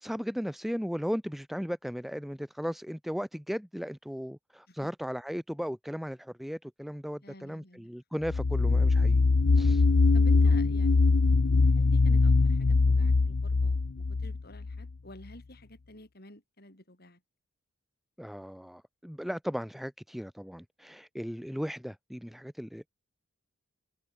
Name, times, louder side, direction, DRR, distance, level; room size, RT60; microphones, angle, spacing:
voice 1, 0.0-9.2 9.6-9.8 18.2-22.9, equal, ahead, 0.7 m, -36 dB
voice 2, 7.2-7.9 10.1-11.1 11.6-17.2, left 1 dB, 50° left, 7.2 m, -50 dB
sound 1, 8.2-14.9, left 3 dB, 85° left, 0.7 m, -23 dB
head